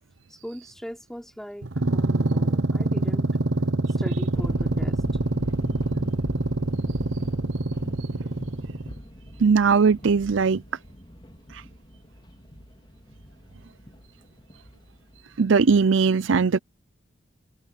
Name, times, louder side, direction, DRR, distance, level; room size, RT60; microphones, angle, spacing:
voice 1, 0.3-3.3 4.0-5.0, equal, ahead, 4.3 m, -40 dB
sound 1, 1.6-9.0, right 2 dB, 85° right, 1.2 m, -25 dB
sound 2, 4.3-15.9, equal, 25° left, 4.5 m, -41 dB
voice 2, 9.4-10.6 11.5-11.6 15.4-16.6, right 5 dB, 70° right, 0.5 m, -19 dB
head